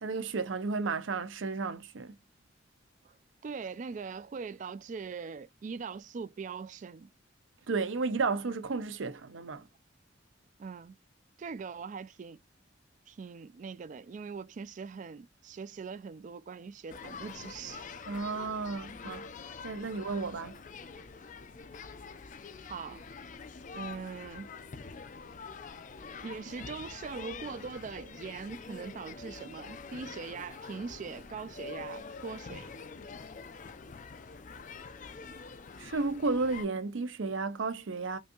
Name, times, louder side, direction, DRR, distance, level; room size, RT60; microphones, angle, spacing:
voice 1, 0.0-2.1 7.7-9.6 18.1-19.2 19.6-20.5 35.8-38.2, right 4 dB, 85° right, 0.6 m, -33 dB
voice 2, 3.4-7.1 10.6-11.0 11.4-12.4 13.1-17.9 22.6-23.1 23.7-24.5 26.2-32.7, right 5 dB, 40° right, 0.3 m, -41 dB
sound 1, 16.9-36.7, left 5 dB, 40° left, 0.4 m, -46 dB
5.2 x 2.6 x 2.3 m
head